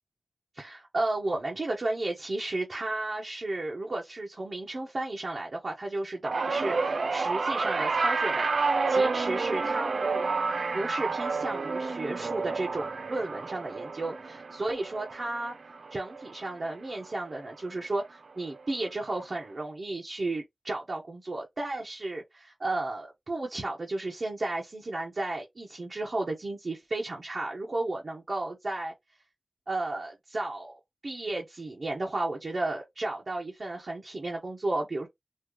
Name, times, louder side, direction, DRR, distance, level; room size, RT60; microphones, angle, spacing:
voice 1, 0.5-10.3 10.7-15.5 15.9-28.9 29.7-30.8 31.0-35.1, right 2 dB, 55° right, 1.3 m, -33 dB
sound 1, 6.2-16.7 17.0-17.4 18.6-18.7, right 4 dB, 85° right, 0.4 m, -30 dB
4.4 x 2.8 x 3.2 m
wide cardioid pair, 95°, 0 cm